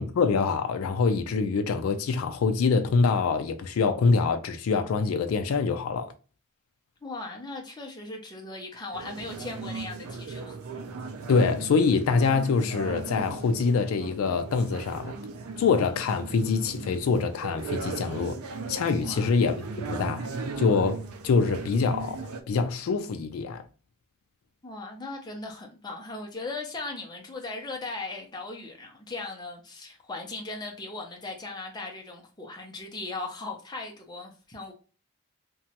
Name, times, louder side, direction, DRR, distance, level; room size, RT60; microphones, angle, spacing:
voice 1, 0.0-6.1 11.3-15.2 15.6-18.4 18.7-23.6, left 4 dB, 70° left, 0.3 m, -25 dB
voice 2, 7.0-10.6 19.0-19.4 24.6-34.7, left 3 dB, 20° left, 0.5 m, -38 dB
sound 1, 8.9-22.4, right 4 dB, 80° right, 0.4 m, -37 dB
2.9 x 2.3 x 2.7 m
head